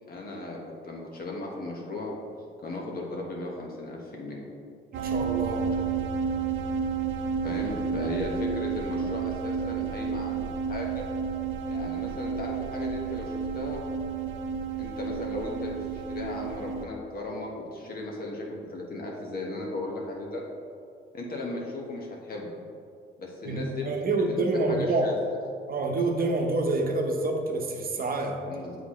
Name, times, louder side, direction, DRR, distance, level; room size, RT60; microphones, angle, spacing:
voice 1, 0.1-0.6 0.8-2.2 2.6-4.4 7.4-11.1 11.7-13.8 14.8-20.4 21.1-22.5 23.2-25.2 28.5-28.8, left 2 dB, 50° left, -1 dB, 1.3 m, -36 dB
voice 2, 4.9-5.7 8.0-8.1 23.5-25.1 25.7-28.4, right 2 dB, 50° right, 2 dB, 0.9 m, -27 dB
sound 1, 4.9-16.9, right 6 dB, 90° right, 0.5 m, -31 dB
8.1 x 4.0 x 3.1 m, 2.5 s
cardioid pair, 90°, 20 cm